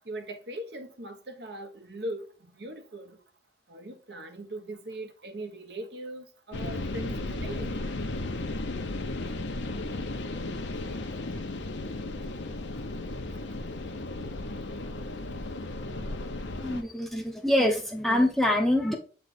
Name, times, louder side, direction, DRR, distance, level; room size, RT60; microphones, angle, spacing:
voice 1, 0.1-2.3 2.6-3.2 3.7-7.8, right 1 dB, 60° right, 1.0 m, -40 dB
sound 1, 6.5-16.8, left 2 dB, 80° left, 0.8 m, -35 dB
voice 2, 16.6-19.0, left 1 dB, ahead, 0.7 m, -25 dB
8.1 x 3.3 x 4.1 m
head